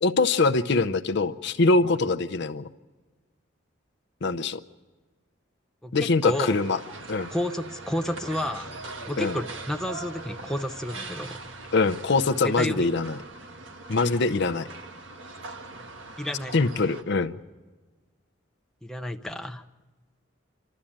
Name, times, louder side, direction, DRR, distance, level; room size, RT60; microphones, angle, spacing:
voice 1, 0.0-2.7 4.2-4.6 5.9-6.8 7.1-7.3 9.2-9.3 11.7-13.2 13.9-14.7 16.5-17.3, left 3 dB, 65° left, 9 dB, 0.7 m, -23 dB
voice 2, 5.8-6.5 7.3-8.7 9.1-11.4 12.4-12.9 16.2-16.6 18.8-19.6, left 1 dB, 5° left, 5 dB, 0.7 m, -31 dB
sound 1, 6.3-17.0, right 3 dB, 75° right, 1.5 m, -41 dB
27.0 x 13.0 x 8.8 m, 1.3 s
head